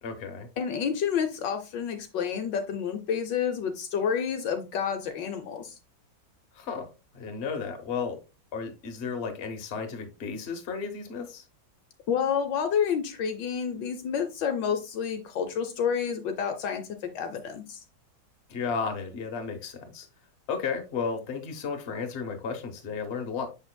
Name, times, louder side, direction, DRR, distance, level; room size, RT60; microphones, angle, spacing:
voice 1, 0.0-0.5 6.5-6.9 7.1-8.2 8.5-11.5 18.5-20.1 20.5-23.5, left 5 dB, 40° left, 1.1 m, -33 dB
voice 2, 0.6-5.7 12.1-16.8 17.1-17.8, left 7 dB, 70° left, 1.3 m, -29 dB
6.8 x 6.2 x 2.2 m
omnidirectional pair, 2.1 m